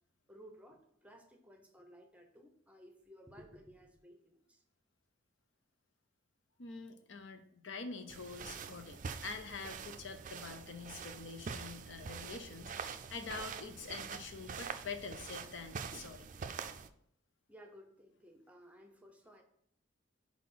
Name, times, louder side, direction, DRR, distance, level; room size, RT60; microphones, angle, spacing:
voice 1, 0.3-4.6 17.5-19.4, equal, 5° right, 4 dB, 0.7 m, -57 dB
voice 2, 6.6-16.3, left 4 dB, 70° left, 7 dB, 0.7 m, -46 dB
sound 1, 8.1-16.9, right 6 dB, 40° right, 0.4 m, -45 dB
4.7 x 4.2 x 5.7 m, 0.69 s
head